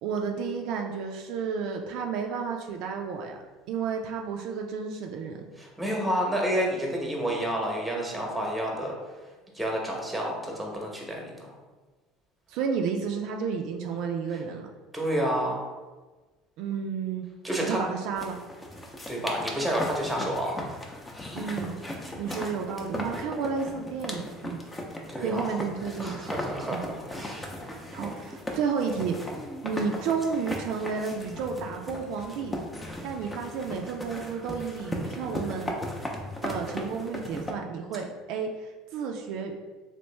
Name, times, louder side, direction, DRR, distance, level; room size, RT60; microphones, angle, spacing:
voice 1, 0.0-3.4 3.7-5.4 12.5-14.7 16.6-17.2 17.6-18.4 21.3-21.8 22.2-24.6 25.2-26.3 26.7-26.8 27.9-29.2 29.6-32.6 33.0-35.7 36.4-39.6, right 6 dB, 70° right, 3 dB, 0.3 m, -31 dB
voice 2, 5.6-8.9 9.5-11.5 14.9-15.7 17.4-17.8 19.1-20.6 25.1-25.5 26.0-27.6, equal, 5° right, -1 dB, 0.9 m, -29 dB
sound 1, 18.2-37.5, left 1 dB, 15° left, 0.6 m, -37 dB
3.0 x 2.6 x 3.2 m, 1.3 s
supercardioid pair, 90°, 0 cm